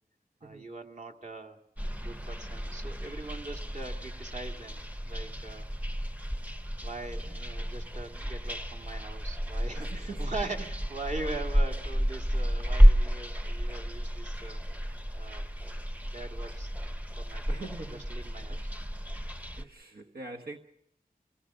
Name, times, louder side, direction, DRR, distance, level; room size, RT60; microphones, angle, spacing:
voice 1, 0.4-1.6 2.0-5.7 6.8-14.6 15.1-15.5 16.1-16.7 17.2-18.7, right 2 dB, 50° right, 2.1 m, -42 dB
sound 1, 1.8-19.6, equal, 10° right, 0.8 m, -30 dB
voice 2, 9.7-10.3 13.1-13.2 17.5-18.0 18.5-18.7 19.6-20.6, right 3 dB, 80° right, 1.4 m, -43 dB
26.0 x 18.5 x 6.7 m
wide cardioid pair, 75°, 16 cm